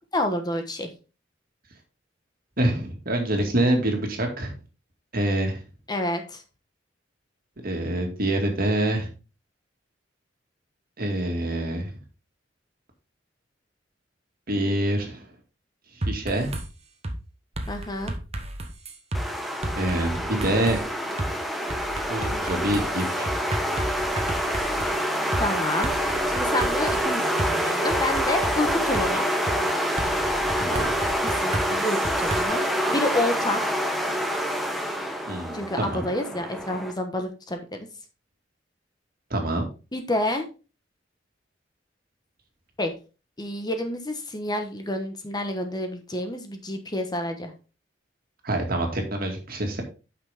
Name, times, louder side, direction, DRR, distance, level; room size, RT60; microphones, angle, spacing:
voice 1, 0.1-0.9 5.9-6.4 17.7-18.1 25.4-29.3 31.2-32.6 32.9-33.6 35.5-37.9 39.9-40.5 42.8-42.9 43.4-47.5, left 1 dB, 25° left, 5 dB, 1.1 m, -29 dB
voice 2, 2.6-4.5 5.1-5.6 7.6-9.1 11.0-11.9 14.5-15.3 16.1-16.5 19.8-20.8 22.1-23.3 30.6-30.9 35.3-36.1 39.3-39.7 48.4-49.8, right 1 dB, 55° right, 3 dB, 2.2 m, -26 dB
sound 1, 16.0-16.7 17.0-17.2 17.6-19.2 19.6-20.8 21.2-21.3 21.7-24.9 25.3-25.5 25.8-27.5 27.9-29.1 29.5-29.6 30.0-32.4, right 1 dB, 35° right, 1.2 m, -32 dB
sound 2, 19.1-36.9, equal, ahead, 1.2 m, -27 dB
8.9 x 6.0 x 3.6 m, 0.32 s
head